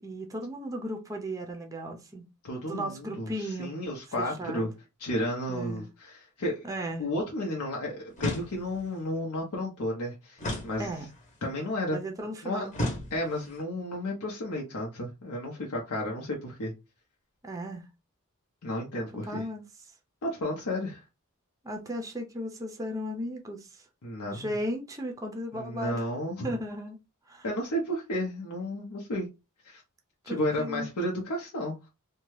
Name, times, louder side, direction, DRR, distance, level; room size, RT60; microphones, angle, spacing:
voice 1, 0.0-2.2 2.7-3.8 4.2-4.7 5.5-5.8 6.6-7.1 10.8-11.1 11.9-12.8 17.4-17.9 19.3-19.6 21.6-23.8 24.3-26.1 26.4-27.0 27.3-27.5 30.2-30.9, equal, 15° right, 0.5 m, -36 dB
voice 2, 2.4-4.7 5.0-6.6 7.0-10.9 11.4-12.0 12.4-12.7 13.1-16.7 18.6-19.5 20.2-21.0 24.0-24.5 25.5-26.6 27.4-29.3 29.6-29.8 30.3-31.8, left 1 dB, 80° left, 0.7 m, -32 dB
sound 1, 8.2-8.9 10.4-11.4 12.7-13.6, left 1 dB, 35° left, 0.9 m, -34 dB
2.7 x 2.2 x 3.1 m
head